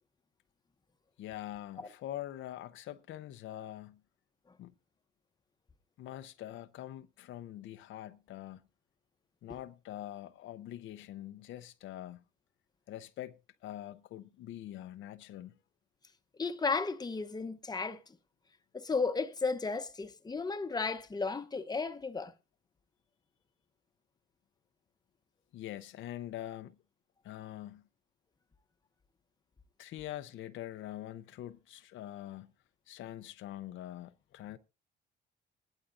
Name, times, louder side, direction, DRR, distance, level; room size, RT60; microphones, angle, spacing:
voice 1, 1.2-4.0 4.6-4.7 6.0-8.6 9.4-12.2 12.9-15.6 25.5-26.7 27.2-27.8 29.8-32.5 32.9-34.6, left 13 dB, 80° left, 0.7 m, -44 dB
voice 2, 16.4-18.2 18.7-22.3, left 4 dB, 20° left, 0.9 m, -34 dB
19.0 x 11.5 x 2.6 m
cardioid pair, 90°, 20 cm